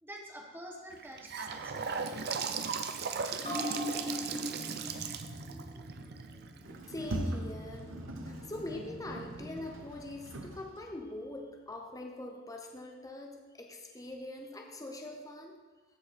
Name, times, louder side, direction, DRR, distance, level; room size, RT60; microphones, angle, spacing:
voice 1, 0.0-2.3, equal, 10° right, 0 dB, 1.2 m, -48 dB
Gurgling / Sink (filling or washing) / Bathtub (filling or washing), 0.9-7.0, right 6 dB, 55° right, 0.6 m, -37 dB
sound 1, 3.4-10.3 10.7-10.8, equal, 35° left, 2.4 m, -42 dB
Sliding door, 6.6-11.1, right 1 dB, 75° right, 0.9 m, -41 dB
voice 2, 6.9-7.9 8.2-15.6, left 2 dB, 20° left, 1 dB, 0.8 m, -43 dB
14.5 x 4.9 x 4.3 m, 1.3 s
head